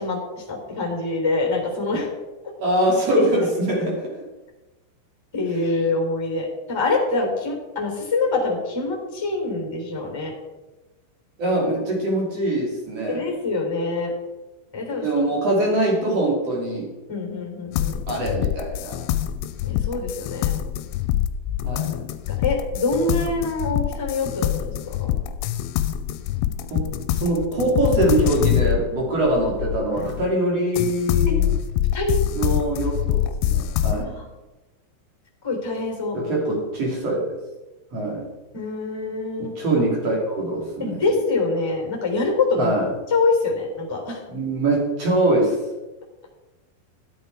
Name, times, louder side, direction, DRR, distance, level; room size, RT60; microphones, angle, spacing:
voice 1, 0.0-2.1 5.3-10.3 13.1-14.1 14.7-15.2 17.1-18.0 19.6-20.5 22.4-25.1 31.3-31.4 31.9-32.2 33.9-34.3 35.4-36.2 38.5-39.5 40.8-42.7 43.1-44.2, left 3 dB, 5° left, 0 dB, 2.7 m, -25 dB
voice 2, 2.6-4.1 11.4-13.3 15.0-16.9 18.1-19.0 21.6-22.0 26.7-31.5 32.3-34.1 36.1-37.2 37.9-38.2 39.4-41.0 42.6-42.9 44.3-45.6, right 1 dB, 40° right, -2 dB, 3.5 m, -23 dB
sound 1, 17.7-30.3 30.8-34.0, left 12 dB, 90° left, 2.9 m, -25 dB
13.5 x 8.5 x 4.8 m, 1.1 s
omnidirectional pair, 5.2 m